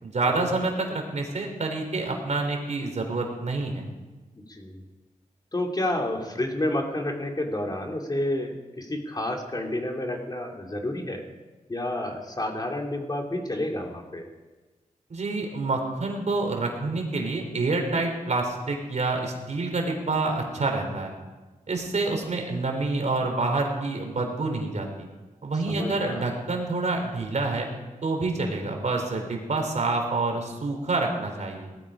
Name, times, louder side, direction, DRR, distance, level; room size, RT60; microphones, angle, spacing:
voice 1, 0.0-3.8 15.1-21.1 21.7-25.1 25.4-27.7 28.0-31.7, right 3 dB, 55° right, 3 dB, 3.6 m, -27 dB
voice 2, 4.5-4.8 5.5-11.2 11.7-14.3 25.7-26.2, left 1 dB, 30° left, 2 dB, 2.7 m, -30 dB
19.0 x 13.5 x 5.0 m, 1.2 s
cardioid pair, 75°, 14 cm